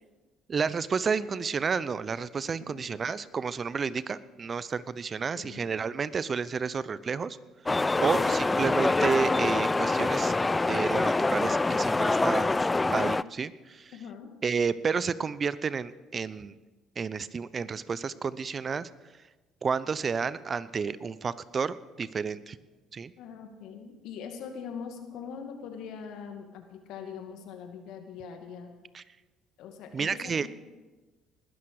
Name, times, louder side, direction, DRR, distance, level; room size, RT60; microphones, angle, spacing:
voice 1, 0.5-7.4 8.0-10.3 10.7-12.5 12.9-13.9 14.4-16.5 17.0-18.9 19.6-22.6 22.9-23.1 28.9-29.0 29.9-30.5, right 5 dB, 40° right, 17 dB, 0.8 m, -31 dB
voice 2, 5.4-5.7 8.0-8.4 13.9-14.3 23.2-28.7 29.6-30.5, left 6 dB, 70° left, 5 dB, 2.3 m, -42 dB
sound 1, 7.7-13.2, left 3 dB, 20° left, 0.4 m, -25 dB
20.0 x 12.5 x 4.9 m, 1.2 s
hypercardioid pair, 60°, 0 cm